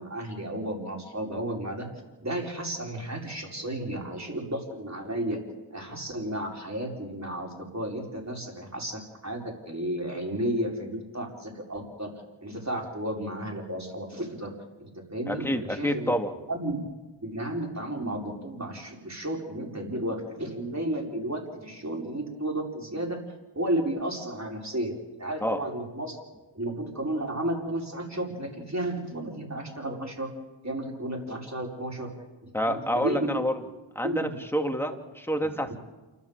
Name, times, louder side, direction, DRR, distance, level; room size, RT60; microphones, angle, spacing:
voice 1, 0.0-1.9 2.2-5.4 5.7-12.1 12.4-14.5 14.8-16.1 16.5-16.9 17.2-23.2 23.6-26.2 26.5-30.4 30.6-32.1 32.4-33.4 34.0-34.4 35.4-35.5, right 1 dB, 35° right, 0 dB, 5.2 m, -33 dB
voice 2, 15.3-16.3 25.4-25.6 32.5-33.5 34.0-35.8, equal, 5° left, 4 dB, 2.3 m, -28 dB
28.5 x 13.0 x 7.5 m, 1.1 s
cardioid pair, 40°, 49 cm